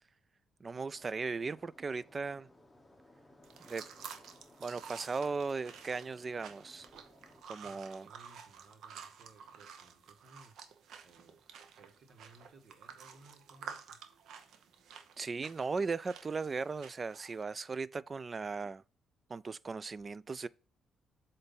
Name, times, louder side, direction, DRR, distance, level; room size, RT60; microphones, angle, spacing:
voice 1, 0.6-2.5 3.6-3.8 4.6-6.9 7.5-8.1 15.2-18.8 19.3-20.5, right 4 dB, 35° right, 0.3 m, -37 dB
sound 1, 0.9-7.4, left 1 dB, 10° left, 1.1 m, -61 dB
sound 2, 3.4-17.4, right 7 dB, 75° right, 0.7 m, -51 dB
voice 2, 7.6-10.7 11.0-11.4 11.8-14.0, right 3 dB, 55° right, 1.3 m, -60 dB
7.9 x 2.7 x 5.4 m
cardioid pair, 90°, 0 cm